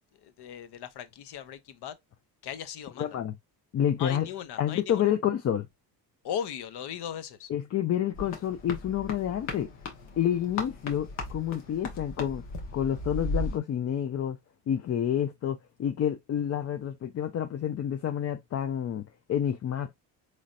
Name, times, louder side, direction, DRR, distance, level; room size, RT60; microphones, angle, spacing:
voice 1, 0.2-1.9 2.4-3.1 4.0-5.0 6.2-7.5, left 9 dB, 55° left, 0.8 m, -37 dB
voice 2, 3.0-3.3 3.7-4.3 4.6-5.7 7.5-9.7 10.2-12.4 12.7-14.4 14.7-19.9, left 10 dB, 35° left, 0.4 m, -29 dB
sound 1, 8.1-13.6, left 3 dB, 85° left, 1.2 m, -36 dB
3.9 x 3.2 x 2.5 m
supercardioid pair, 65°, 46 cm